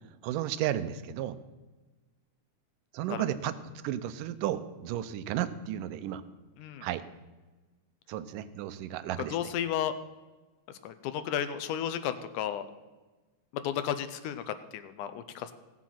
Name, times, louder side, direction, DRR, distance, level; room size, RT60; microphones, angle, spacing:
voice 1, 0.2-1.4 2.9-3.5 3.8-6.2 6.8-7.0 8.1-9.4, right 11 dB, 90° right, 13 dB, 2.3 m, -33 dB
voice 2, 9.3-9.9 10.8-12.7 13.5-15.5, left 10 dB, 80° left, 11 dB, 2.1 m, -33 dB
16.0 x 7.3 x 5.7 m, 1.2 s
omnidirectional pair, 3.7 m